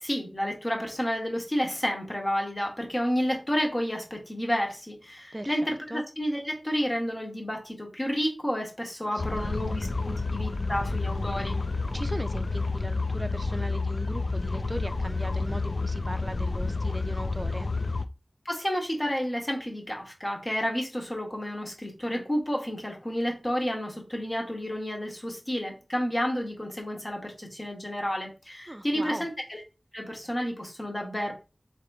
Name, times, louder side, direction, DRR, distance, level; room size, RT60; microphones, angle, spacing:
voice 1, 0.0-11.6 18.4-29.6 29.9-31.3, equal, 30° left, 1.3 m, -30 dB
voice 2, 5.3-6.0 9.1-9.8 11.9-17.7 28.7-29.3, right 1 dB, 20° right, 0.5 m, -38 dB
sound 1, 9.2-18.1, left 3 dB, 65° left, 0.3 m, -30 dB
3.7 x 2.8 x 3.5 m
wide cardioid pair, 55°, 0 cm